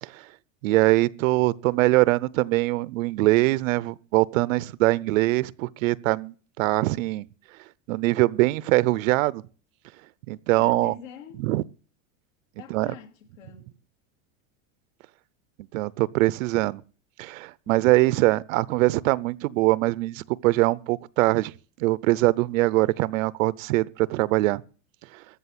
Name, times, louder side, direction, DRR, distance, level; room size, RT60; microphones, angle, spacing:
voice 1, 0.6-7.2 7.9-9.4 10.3-10.9 11.4-11.6 12.7-12.9 15.7-16.8 17.2-21.5 21.8-24.6, right 19 dB, 85° right, 0.7 m, -22 dB
voice 2, 10.5-11.4 12.6-13.7, left 7 dB, 85° left, 2.5 m, -44 dB
14.0 x 7.7 x 7.9 m
supercardioid pair, 180°, 38 cm